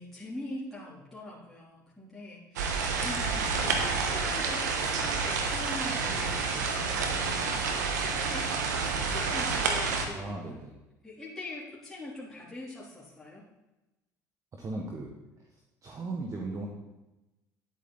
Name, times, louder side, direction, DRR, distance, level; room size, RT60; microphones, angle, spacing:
voice 1, 0.0-8.5 8.9-10.4 11.0-13.4, left 2 dB, 5° left, -8 dB, 3.1 m, -43 dB
sound 1, 2.6-10.1, right 4 dB, 85° right, 1.2 m, -29 dB
voice 2, 10.1-10.8 14.5-15.1 15.8-16.7, right 2 dB, 35° right, 1 dB, 1.5 m, -37 dB
10.5 x 8.4 x 3.9 m, 1.0 s
hypercardioid pair, 65°, 9 cm